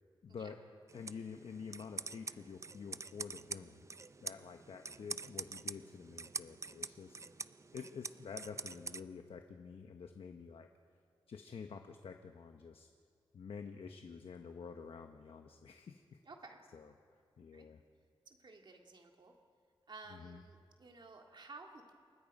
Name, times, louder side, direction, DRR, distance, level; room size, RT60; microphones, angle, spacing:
voice 1, 0.2-0.6 0.9-3.8 4.2-7.2 7.7-10.7 11.3-12.9 13.3-16.2 16.7-16.9 17.4-17.8 20.1-20.4, left 6 dB, 90° left, 6 dB, 1.1 m, -49 dB
sound 1, 0.9-9.0, right 4 dB, 30° right, 0.5 m, -46 dB
voice 2, 16.2-16.6 17.5-17.7 18.3-19.3 19.9-21.9, right 3 dB, 55° right, 2 dB, 2.0 m, -54 dB
28.0 x 23.0 x 5.4 m, 2.1 s
wide cardioid pair, 110°, 9 cm